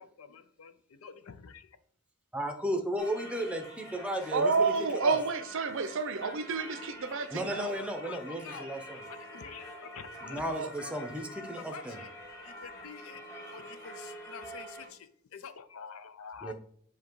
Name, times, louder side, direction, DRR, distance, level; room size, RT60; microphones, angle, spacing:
voice 1, 0.2-1.7 7.6-8.2 8.4-8.7 9.3-10.4 10.9-11.0 11.7-12.1 12.4-13.2 13.5-16.5, left 6 dB, 70° left, 0.5 m, -47 dB
voice 2, 2.3-5.2 7.3-9.1 10.2-12.0 16.4-16.5, equal, 5° right, 0.7 m, -34 dB
Singing / Church bell, 3.0-14.9, equal, 15° left, 1.4 m, -46 dB
voice 3, 4.3-7.7 10.6-10.7, right 4 dB, 60° right, 0.6 m, -29 dB
7.4 x 2.9 x 4.6 m
head